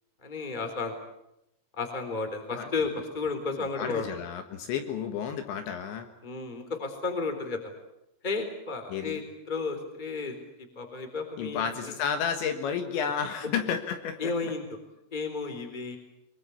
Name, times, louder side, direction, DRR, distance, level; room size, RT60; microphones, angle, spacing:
voice 1, 0.2-0.9 1.8-4.1 6.2-7.7 8.2-9.2 9.5-10.3 10.7-11.9 14.2-14.6 15.1-16.0, left 4 dB, 10° left, 6 dB, 2.9 m, -33 dB
voice 2, 3.5-6.1 8.9-9.2 11.4-14.5, left 7 dB, 70° left, 6 dB, 3.6 m, -32 dB
23.5 x 23.5 x 8.4 m, 0.84 s
omnidirectional pair, 5.8 m